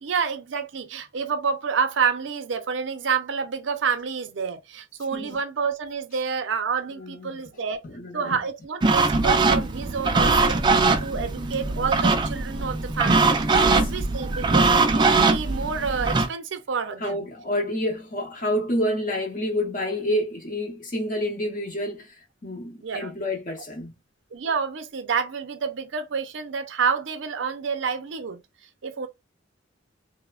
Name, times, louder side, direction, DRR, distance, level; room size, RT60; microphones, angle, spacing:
voice 1, 0.0-7.8 8.1-13.4 13.7-17.2 22.8-23.1 24.3-28.4 28.8-29.1, right 5 dB, 75° right, 0.5 m, -28 dB
voice 2, 6.9-7.3 7.8-8.4 13.5-13.9 17.0-23.9, left 1 dB, 45° left, 0.7 m, -29 dB
sound 1, 8.8-16.3, right 3 dB, 25° right, 0.3 m, -21 dB
3.1 x 2.0 x 2.3 m
head